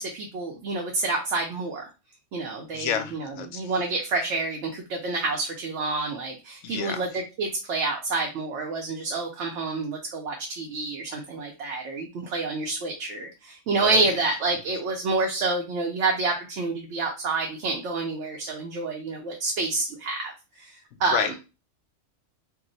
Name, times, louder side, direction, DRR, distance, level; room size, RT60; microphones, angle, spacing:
voice 1, 0.0-1.9 2.3-20.7 21.0-21.3, right 3 dB, 75° right, 1.0 m, -28 dB
voice 2, 2.7-3.7 6.6-7.0 13.7-14.1 21.1-21.3, left 8 dB, 75° left, 0.9 m, -30 dB
2.8 x 2.0 x 3.9 m
omnidirectional pair, 1.2 m